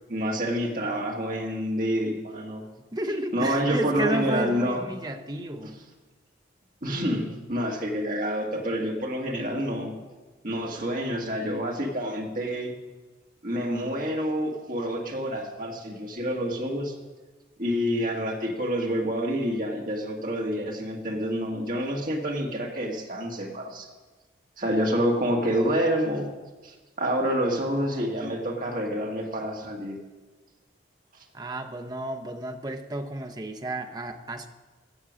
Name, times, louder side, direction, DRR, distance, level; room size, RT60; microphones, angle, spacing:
voice 1, 0.1-2.6 3.3-4.8 6.8-9.9 10.4-12.7 13.4-16.9 17.6-23.9 24.6-26.3 26.6-30.0, equal, 45° right, 0 dB, 1.8 m, -28 dB
voice 2, 2.9-5.8 31.3-34.5, right 1 dB, 20° right, 6 dB, 0.7 m, -32 dB
16.0 x 6.7 x 6.3 m, 1.3 s
head